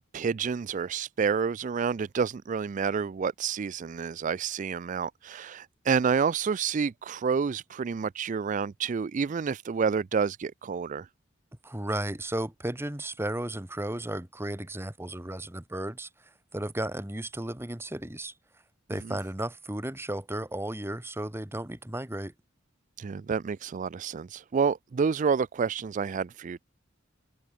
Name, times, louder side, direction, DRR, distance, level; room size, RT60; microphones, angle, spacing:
voice 1, 0.0-11.1 23.0-26.6, right 6 dB, 40° right, 0.4 m, -29 dB
voice 2, 11.6-16.1 16.5-18.3 18.9-22.3, right 1 dB, 10° right, 1.4 m, -34 dB
open air
head